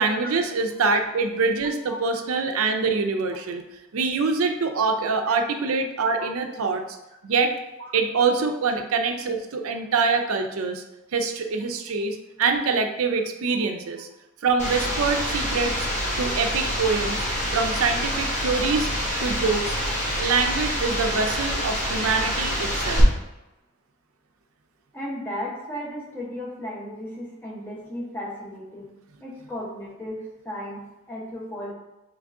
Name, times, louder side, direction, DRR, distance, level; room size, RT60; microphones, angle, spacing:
voice 1, 0.0-3.6 3.9-6.8 7.2-7.5 7.9-10.8 11.1-14.1 14.4-15.9 16.2-17.2 17.5-18.9 19.2-19.8 20.2-23.0, right 4 dB, 75° right, 5 dB, 0.5 m, -24 dB
sound 1, 14.6-23.0, equal, 30° left, 1.2 m, -27 dB
voice 2, 24.9-28.9 29.2-31.7, equal, 10° left, -4 dB, 0.8 m, -35 dB
3.7 x 3.2 x 3.5 m, 0.97 s
head